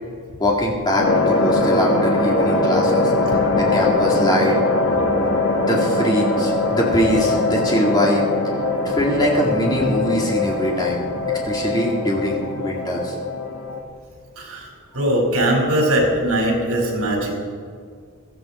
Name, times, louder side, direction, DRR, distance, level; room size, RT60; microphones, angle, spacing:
voice 1, 0.4-3.1 3.5-4.6 5.6-8.2 8.8-11.0 11.4-13.1, equal, 20° left, -2 dB, 2.4 m, -22 dB
sound 1, 1.0-13.8, left 2 dB, 60° left, 1.7 m, -21 dB
voice 2, 14.4-14.7 14.9-17.4, right 1 dB, 75° right, -1 dB, 4.9 m, -20 dB
16.0 x 14.5 x 4.4 m, 2.1 s
head